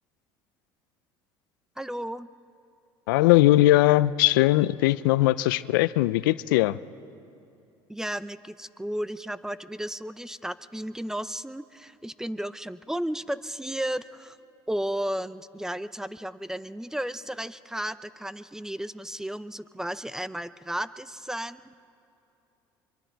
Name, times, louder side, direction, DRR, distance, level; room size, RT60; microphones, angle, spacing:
voice 1, 1.8-2.3 7.9-14.4 14.7-21.7, right 1 dB, 5° right, 16 dB, 0.5 m, -33 dB
voice 2, 3.1-6.8, left 16 dB, 90° left, 18 dB, 0.4 m, -20 dB
24.0 x 23.5 x 4.6 m, 2.7 s
supercardioid pair, 85°, 11 cm